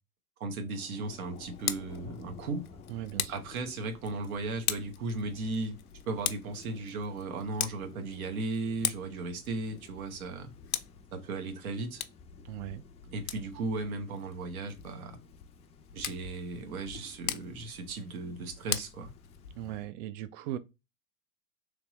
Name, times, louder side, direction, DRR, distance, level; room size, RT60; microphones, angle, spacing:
voice 1, 0.4-2.7 3.3-5.8 6.1-10.5 11.1-12.0 13.0-15.2 15.9-19.1, right 3 dB, 75° right, 1.1 m, -36 dB
Thunder / Rain, 0.7-19.9, left 5 dB, 15° left, 0.3 m, -55 dB
Tick, 1.3-19.8, left 12 dB, 80° left, 0.6 m, -41 dB
voice 2, 2.9-3.3 12.4-12.8 19.6-20.6, right 12 dB, 60° right, 0.5 m, -38 dB
3.3 x 3.1 x 3.0 m
hypercardioid pair, 95°, 42 cm